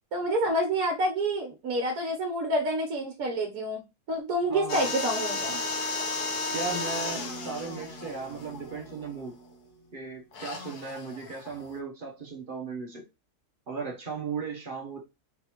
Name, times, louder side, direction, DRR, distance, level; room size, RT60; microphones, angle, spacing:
voice 1, 0.1-3.8 4.1-5.6, right 1 dB, 70° right, 1.3 m, -28 dB
voice 2, 4.5-4.9 6.5-9.3 9.9-13.0 13.7-15.0, right 5 dB, 35° right, 1.1 m, -36 dB
sound 1, 4.7-9.2 10.3-11.7, left 3 dB, 80° left, 1.5 m, -34 dB
sound 2, 6.6-10.8, right 1 dB, 40° left, 1.2 m, -46 dB
4.6 x 3.8 x 3.0 m
omnidirectional pair, 1.6 m